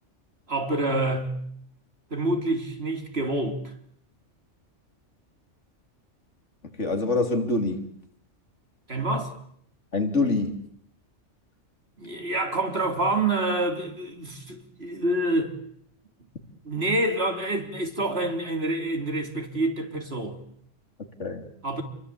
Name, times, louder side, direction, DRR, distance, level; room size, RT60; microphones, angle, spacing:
voice 1, 0.5-1.4 2.1-3.7 8.9-9.3 12.0-15.5 16.6-20.4 21.6-21.8, right 2 dB, 55° right, 4.0 m, -27 dB
voice 2, 6.7-7.9 9.9-10.6 21.2-21.5, left 3 dB, 75° left, 3.7 m, -25 dB
30.0 x 23.0 x 8.6 m
omnidirectional pair, 1.2 m